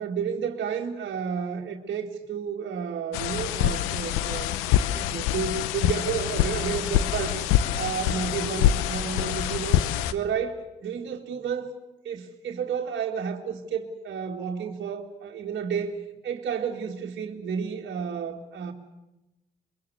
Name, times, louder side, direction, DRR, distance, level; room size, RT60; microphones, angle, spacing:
voice 1, 0.0-4.6 4.9-7.4 7.8-9.8 10.1-11.7 12.0-15.9 16.2-18.7, right 7 dB, 60° right, -2 dB, 2.3 m, -31 dB
sound 1, 3.1-10.1, left 11 dB, 85° left, 0.8 m, -25 dB
24.0 x 22.0 x 8.0 m, 1.0 s
hypercardioid pair, 45°, 21 cm